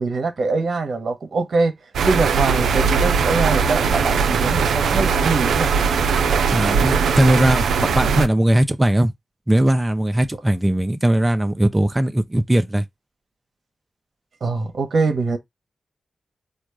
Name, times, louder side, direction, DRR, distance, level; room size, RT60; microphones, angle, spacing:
voice 1, 0.0-1.8 2.0-5.7 14.4-15.4, right 3 dB, 70° right, 1.0 m, -23 dB
sound 1, 1.9-8.3, right 5 dB, 90° right, 0.5 m, -19 dB
voice 2, 6.5-7.6 7.9-9.1 9.5-12.8, right 1 dB, 20° right, 0.7 m, -19 dB
4.3 x 2.4 x 4.7 m
supercardioid pair, 40°, 0 cm